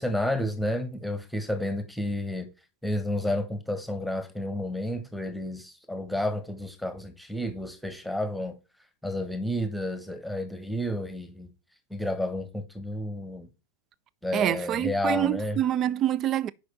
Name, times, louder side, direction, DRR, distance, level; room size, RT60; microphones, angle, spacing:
voice 1, 0.0-2.5 2.8-8.6 9.0-11.5 11.9-13.5 14.2-15.6, left 1 dB, ahead, 1.1 m, -31 dB
voice 2, 14.3-16.5, right 12 dB, 30° right, 0.3 m, -26 dB
6.3 x 5.0 x 3.9 m
figure-of-eight pair, 90°, 0 cm